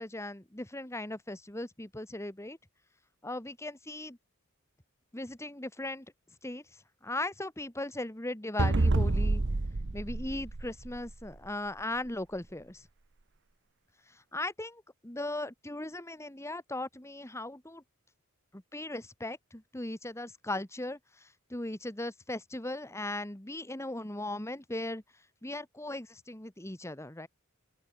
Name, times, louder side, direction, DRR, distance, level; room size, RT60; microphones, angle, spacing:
voice 1, 0.0-2.6 3.2-4.2 5.1-6.1 6.4-9.4 9.9-12.9 14.1-17.8 18.5-25.0 25.4-27.3, left 1 dB, 15° left, 1.8 m, -38 dB
sound 1, 8.6-11.3, right 2 dB, 55° right, 1.0 m, -28 dB
open air
head